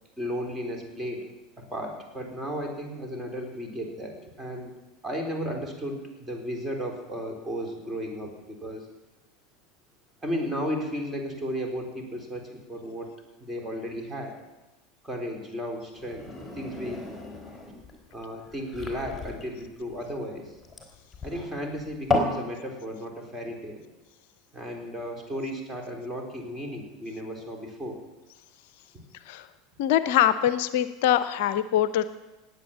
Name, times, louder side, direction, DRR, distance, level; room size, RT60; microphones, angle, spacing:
voice 1, 0.2-1.3 1.6-4.7 5.0-8.9 10.2-13.1 13.4-14.3 15.0-16.3 16.5-17.1 18.1-20.6 21.2-23.8 24.5-28.0, equal, 15° right, 2 dB, 3.9 m, -34 dB
sound 1, 15.9-22.4, left 2 dB, 10° left, 3.9 m, -33 dB
voice 2, 29.8-32.0, left 11 dB, 60° left, 14 dB, 0.6 m, -23 dB
18.5 x 8.7 x 7.1 m, 1.1 s
figure-of-eight pair, 75°, 0 cm